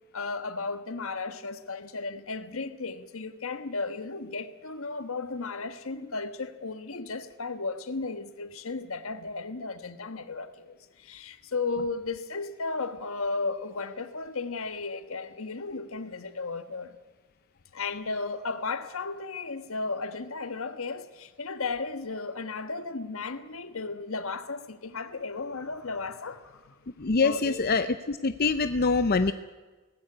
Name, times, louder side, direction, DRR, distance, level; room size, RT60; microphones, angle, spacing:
voice 1, 0.1-17.0 17.7-26.7 27.2-27.6, left 3 dB, 70° left, 1.3 m, -34 dB
voice 2, 27.0-29.3, left 4 dB, 45° left, 0.6 m, -25 dB
19.0 x 16.0 x 9.7 m
head